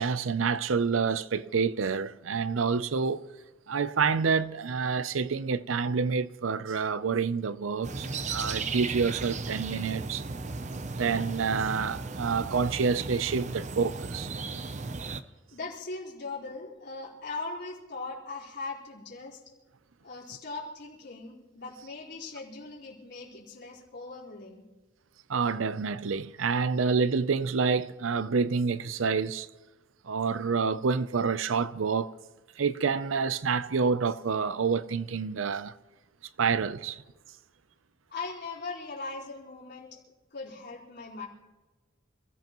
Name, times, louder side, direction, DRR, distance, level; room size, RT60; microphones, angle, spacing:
voice 1, 0.0-3.3 3.7-10.2 10.8-14.3 25.3-29.5 30.0-32.1 32.6-35.7 36.4-37.0, right 5 dB, 85° right, 0.6 m, -28 dB
sound 1, 7.8-15.2, right 3 dB, 35° right, 0.6 m, -35 dB
voice 2, 15.5-19.4 20.0-24.6 38.1-41.3, left 3 dB, 55° left, 4.5 m, -40 dB
27.5 x 15.0 x 3.0 m
head